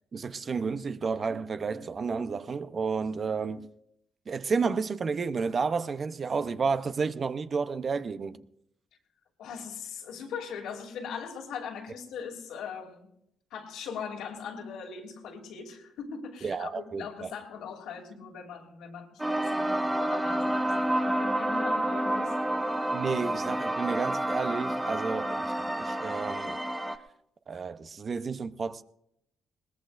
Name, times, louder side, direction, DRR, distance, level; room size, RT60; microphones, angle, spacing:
voice 1, 0.1-3.7 4.3-8.4 16.4-17.3 22.9-26.6 27.5-28.8, right 5 dB, 40° right, 0.7 m, -31 dB
voice 2, 9.4-13.1 13.5-22.3, left 6 dB, 85° left, 2.8 m, -40 dB
sound 1, 19.2-27.0, right 1 dB, 10° right, 0.9 m, -29 dB
21.0 x 19.0 x 2.6 m
cardioid pair, 90°, 0 cm